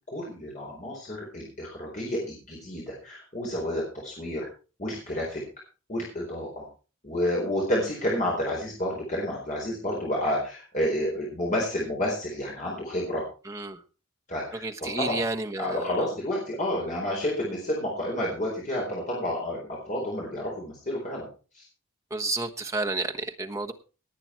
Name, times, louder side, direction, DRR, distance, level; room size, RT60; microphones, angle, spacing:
voice 1, 0.1-4.5 4.8-5.4 5.9-6.7 7.0-13.2 14.3-15.2 15.6-21.3 21.5-21.6, left 1 dB, 40° left, 4.4 m, -30 dB
voice 2, 13.5-13.8 14.5-15.9 22.1-23.7, right 2 dB, 15° right, 1.3 m, -31 dB
19.0 x 8.8 x 4.6 m
head